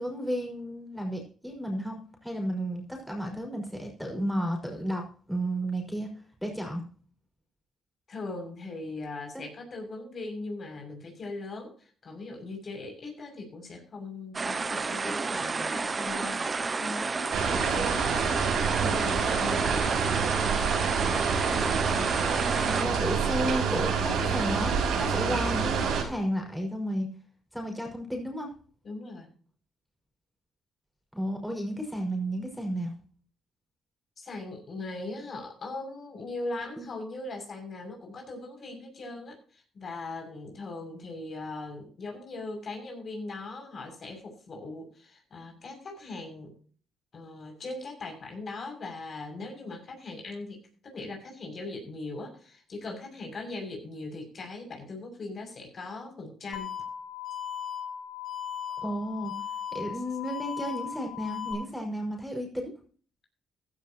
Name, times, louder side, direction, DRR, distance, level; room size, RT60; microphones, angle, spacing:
voice 1, 0.0-6.1 6.4-6.8 22.4-27.1 27.5-28.5 31.1-32.9 36.8-36.9 58.8-59.3 59.7-62.7, equal, ahead, 1 dB, 5.5 m, -33 dB
voice 2, 8.1-17.3 17.7-20.3 28.8-29.3 34.2-46.6 47.1-56.7 59.9-60.0, left 2 dB, 45° left, 2 dB, 6.7 m, -40 dB
sound 1, 14.3-22.8, right 4 dB, 30° right, 0.8 m, -31 dB
sound 2, 17.3-26.0, right 6 dB, 80° right, 6.1 m, -27 dB
sound 3, 56.5-61.5, left 9 dB, 75° left, 4.2 m, -37 dB
16.0 x 13.0 x 3.0 m, 0.43 s
cardioid pair, 90°, 0 cm